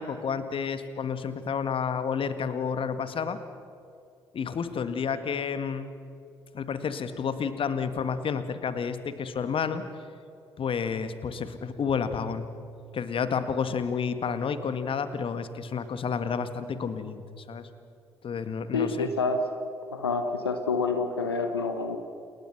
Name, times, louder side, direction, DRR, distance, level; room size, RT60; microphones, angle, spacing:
voice 1, 0.0-3.4 4.3-5.9 6.5-9.8 10.6-12.5 12.9-17.7 18.2-19.1, left 6 dB, 45° left, 11 dB, 1.8 m, -30 dB
voice 2, 18.7-19.4 19.9-22.0, left 4 dB, 85° left, 6 dB, 1.1 m, -28 dB
29.0 x 20.5 x 6.0 m, 2.6 s
figure-of-eight pair, 45°, 13 cm